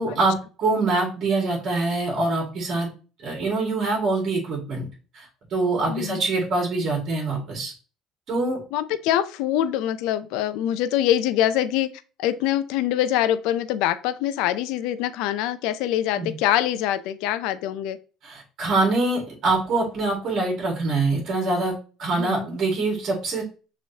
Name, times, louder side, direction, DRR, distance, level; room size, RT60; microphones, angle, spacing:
voice 1, 0.0-2.9 3.2-4.9 5.1-7.7 8.3-8.6 16.2-16.4 18.2-23.4, right 3 dB, 45° right, -1 dB, 2.0 m, -24 dB
voice 2, 5.9-6.2 8.7-11.9 12.2-18.0 22.2-22.5, left 12 dB, 80° left, 13 dB, 0.4 m, -24 dB
6.2 x 3.0 x 2.8 m, 0.35 s
cardioid pair, 130°, 0 cm